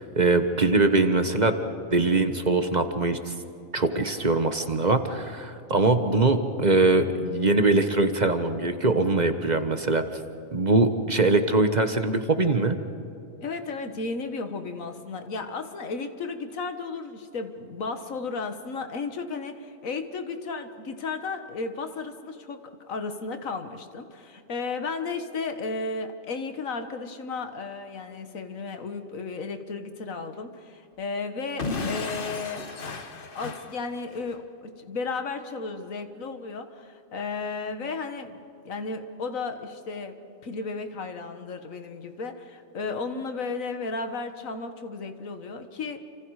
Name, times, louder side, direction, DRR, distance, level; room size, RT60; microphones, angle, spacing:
voice 1, 0.0-1.5 1.9-3.3 3.7-10.0 10.5-12.8, right 3 dB, 35° right, 8 dB, 1.3 m, -22 dB
voice 2, 13.4-22.6 22.9-32.6 33.4-40.2 40.4-46.0, left 4 dB, 80° left, 7 dB, 1.9 m, -34 dB
Explosion / Shatter, 31.6-34.4, left 4 dB, 45° left, 1.3 m, -34 dB
29.0 x 26.5 x 4.9 m, 2.8 s
omnidirectional pair, 1.4 m